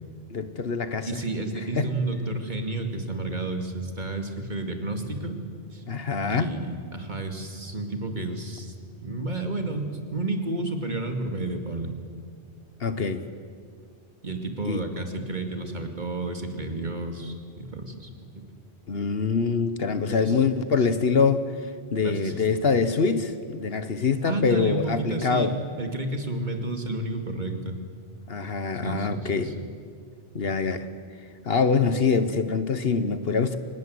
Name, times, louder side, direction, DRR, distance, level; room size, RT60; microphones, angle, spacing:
voice 1, 0.3-1.1 1.8-1.9 5.9-6.5 12.8-13.2 14.7-14.8 18.9-21.4 21.9-25.6 28.3-29.5 30.3-30.9 31.4-33.6, left 5 dB, 60° left, 11 dB, 1.3 m, -24 dB
voice 2, 1.0-5.4 5.7-5.8 6.3-8.7 9.0-11.9 14.2-18.1 20.2-20.4 22.0-22.4 24.2-27.8 28.8-29.7, right 2 dB, 40° right, 5 dB, 2.4 m, -31 dB
25.5 x 19.5 x 7.9 m, 2.1 s
omnidirectional pair, 1.2 m